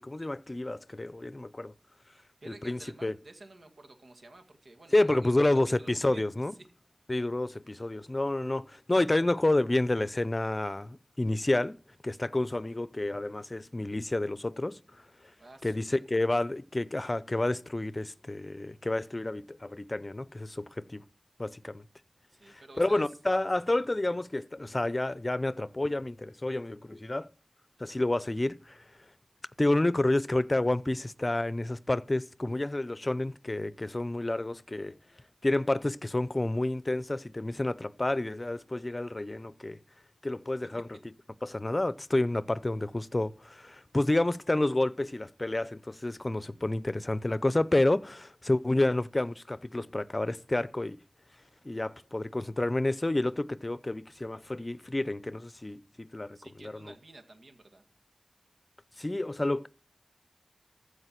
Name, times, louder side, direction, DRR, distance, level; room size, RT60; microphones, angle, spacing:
voice 1, 0.0-1.7 2.5-3.1 4.9-6.5 7.1-11.8 12.0-14.8 15.6-21.0 21.4-21.8 22.8-27.3 27.8-28.8 29.6-34.9 35.4-39.8 40.2-40.9 41.4-51.0 51.6-56.4 56.6-56.9 59.0-59.7, left 2 dB, 40° left, 0.7 m, -29 dB
voice 2, 2.4-5.5 5.8-6.5 15.4-16.2 22.3-23.1 56.3-57.9, right 2 dB, 85° right, 1.9 m, -52 dB
15.0 x 5.0 x 7.6 m
wide cardioid pair, 45°, 0 cm